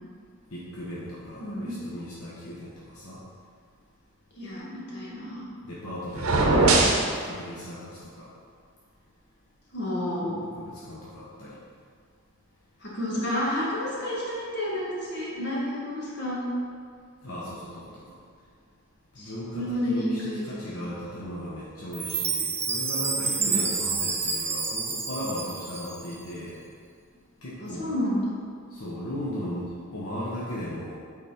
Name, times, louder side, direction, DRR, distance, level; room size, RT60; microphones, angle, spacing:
voice 1, 0.5-3.2 5.6-6.4 6.7-6.9 7.2-8.3 10.5-11.6 17.2-18.0 19.1-26.6 27.4-27.9 28.7-31.0, equal, 75° left, -7 dB, 1.2 m, -37 dB
voice 2, 1.4-1.7 4.4-5.5 9.7-10.3 12.8-16.4 19.2-20.8 23.4-23.7 27.6-28.3, left 1 dB, 50° left, -6 dB, 2.0 m, -30 dB
sound 1, 6.1-7.1, right 2 dB, 75° right, 1.0 m, -20 dB
Chime, 21.9-26.2, right 4 dB, 10° right, 0.4 m, -29 dB
8.5 x 4.2 x 4.4 m, 2.1 s
head